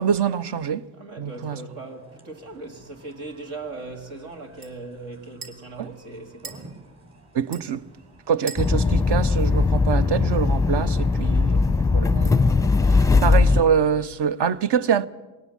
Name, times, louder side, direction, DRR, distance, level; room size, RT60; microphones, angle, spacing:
voice 1, 0.0-0.8 1.2-1.6 5.8-5.9 7.3-7.8 8.3-15.1, right 7 dB, 55° right, 0.9 m, -25 dB
voice 2, 0.9-6.9, right 3 dB, 70° right, 2.7 m, -39 dB
sound 1, 1.3-12.0, right 2 dB, 35° right, 5.5 m, -52 dB
sound 2, 2.4-10.2, right 3 dB, 90° right, 1.9 m, -47 dB
sound 3, 8.6-13.6, left 4 dB, 5° left, 0.7 m, -19 dB
21.0 x 18.0 x 7.3 m
hypercardioid pair, 45°, 49 cm